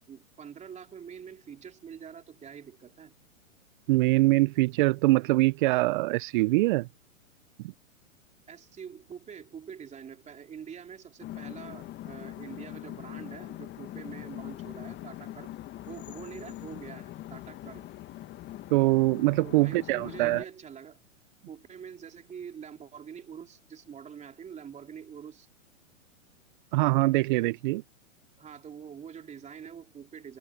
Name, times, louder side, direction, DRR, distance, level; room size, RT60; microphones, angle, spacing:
voice 1, 0.1-3.1 8.5-15.6 15.9-17.9 19.4-21.0 21.5-25.5 28.4-30.4, right 7 dB, 15° right, 4.0 m, -45 dB
voice 2, 3.9-6.9 18.7-20.4 26.7-27.8, right 20 dB, 40° right, 0.6 m, -23 dB
sound 1, 11.2-20.4, left 14 dB, 25° left, 1.6 m, -42 dB
hypercardioid pair, 120°, 40 cm